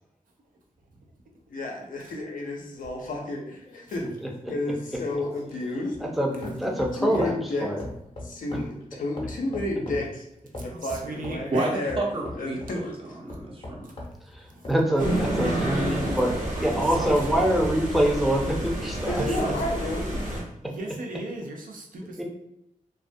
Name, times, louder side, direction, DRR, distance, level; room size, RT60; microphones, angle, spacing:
voice 1, 1.5-4.1 4.5-6.0 6.3-7.7 8.2-10.2 10.6-12.0 12.4-12.9 19.1-20.2, left 2 dB, 90° left, 0 dB, 0.5 m, -31 dB
sound 1, 2.8-6.2 6.4-7.4 7.8-10.1 10.5-11.5 11.9-12.8 13.3-15.6 16.0-17.0 17.5-17.6, left 1 dB, 45° left, 0.6 m, -40 dB
voice 2, 6.0-6.3 6.6-7.3 7.6-7.8 14.3-19.4 22.2-22.3, right 1 dB, ahead, -1 dB, 0.5 m, -25 dB
voice 3, 10.6-11.8 14.5-14.7 16.2-17.4 19.2-19.7 20.6-22.2, right 2 dB, 90° right, 1 dB, 0.5 m, -37 dB
voice 4, 11.5-13.9, right 2 dB, 40° right, -1 dB, 0.6 m, -30 dB
sound 2, 15.0-20.4, right 1 dB, 75° right, 0.9 m, -29 dB
2.3 x 2.2 x 2.5 m, 0.81 s
wide cardioid pair, 95°, 14 cm